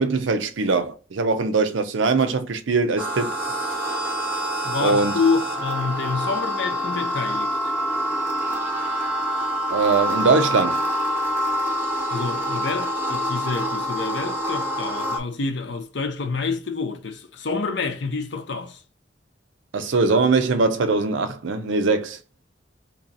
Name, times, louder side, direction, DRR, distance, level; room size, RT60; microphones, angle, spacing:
voice 1, 0.0-3.3 4.8-5.1 9.7-10.9 19.7-22.2, right 4 dB, 85° right, 0.6 m, -21 dB
sound 1, 3.0-15.2, equal, 10° right, 0.6 m, -26 dB
voice 2, 4.6-7.7 12.1-18.8, left 4 dB, 70° left, 0.7 m, -27 dB
2.9 x 2.7 x 3.9 m
head